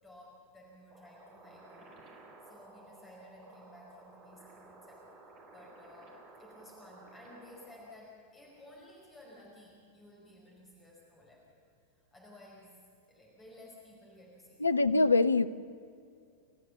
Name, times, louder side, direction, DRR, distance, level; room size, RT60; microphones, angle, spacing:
voice 1, 0.0-2.1 2.4-5.1 5.5-11.6 11.9-14.7, left 1 dB, 20° left, -3 dB, 5.2 m, -55 dB
sound 1, 0.9-7.9, right 3 dB, 35° right, 4.3 m, -55 dB
voice 2, 14.6-15.5, left 3 dB, 80° left, 14 dB, 0.6 m, -24 dB
30.0 x 14.0 x 7.1 m, 2.4 s
figure-of-eight pair, 90°, 0 cm